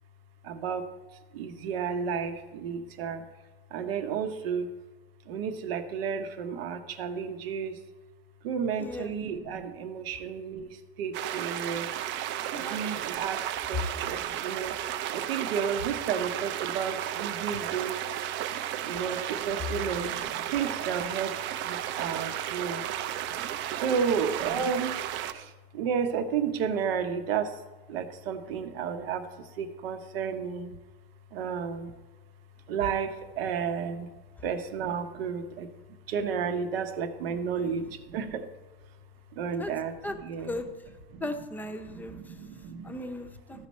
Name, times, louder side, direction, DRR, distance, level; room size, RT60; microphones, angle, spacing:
voice 1, 0.4-3.2 3.7-4.7 5.2-7.8 8.4-12.0 12.5-14.7 15.1-18.6 18.8-22.9 23.6-25.0 25.3-30.8 31.3-31.9 32.7-34.1 34.4-38.5 39.3-40.6 41.1-41.4 41.9-43.0 43.5-43.7, right 6 dB, 90° right, 8 dB, 1.0 m, -32 dB
voice 2, 8.8-9.1 12.5-12.8 23.9-24.2 37.3-37.8 39.6-39.7 40.0-40.7 41.2-42.3 42.8-43.6, left 1 dB, 5° left, 7 dB, 0.6 m, -37 dB
sound 1, 11.1-25.3, right 12 dB, 40° right, 0.4 m, -33 dB
14.0 x 4.9 x 4.2 m, 1.2 s
supercardioid pair, 135°, 29 cm